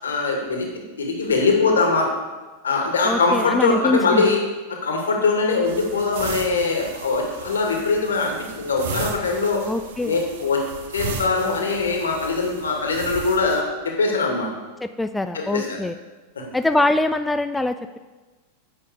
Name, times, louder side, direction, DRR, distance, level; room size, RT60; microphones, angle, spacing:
voice 1, 0.0-0.7 1.0-2.1 2.6-4.4 4.8-9.6 10.0-10.6 10.9-14.5 15.3-15.8, left 4 dB, 70° left, 1 dB, 2.2 m, -22 dB
voice 2, 3.0-4.3 9.7-10.2 14.8-15.9 16.5-18.0, left 2 dB, 5° left, 9 dB, 0.4 m, -23 dB
sound 1, 5.6-13.6, right 5 dB, 55° right, 1.2 m, -36 dB
9.6 x 6.3 x 6.9 m, 1.2 s
figure-of-eight pair, 90°, 0 cm